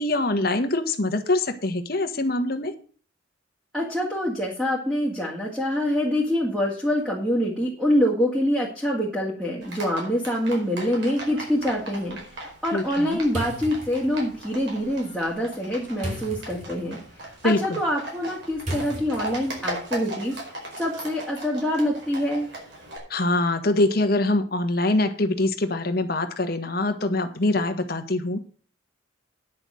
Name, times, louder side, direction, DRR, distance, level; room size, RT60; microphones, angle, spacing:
voice 1, 0.0-2.7 12.7-13.2 17.4-17.8 23.1-28.5, left 2 dB, 50° left, 7 dB, 1.4 m, -24 dB
voice 2, 3.7-17.0 17.4-20.4 20.8-22.5, equal, 5° right, -5 dB, 2.2 m, -25 dB
Livestock farm animals working animals, 9.6-23.0, right 1 dB, 65° right, 4.7 m, -38 dB
sound 1, 13.3-19.8, equal, 40° right, 4.2 m, -38 dB
10.0 x 6.3 x 7.6 m, 0.42 s
head